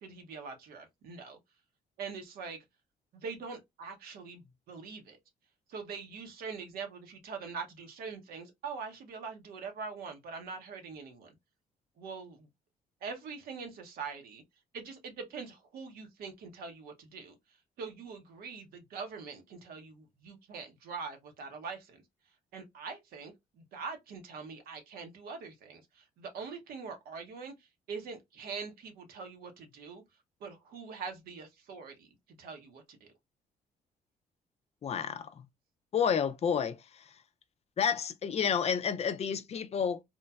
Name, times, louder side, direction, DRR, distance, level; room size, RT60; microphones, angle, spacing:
voice 1, 0.0-1.4 2.0-2.6 3.1-5.2 5.7-11.3 12.0-12.5 13.0-14.4 14.7-17.4 17.8-22.0 22.5-30.0 30.4-32.1 32.4-33.1, right 5 dB, 75° right, 0.8 m, -43 dB
voice 2, 34.8-35.4 35.9-37.0 37.8-40.0, left 7 dB, 40° left, 0.4 m, -30 dB
3.0 x 2.1 x 2.3 m
supercardioid pair, 65°, 16 cm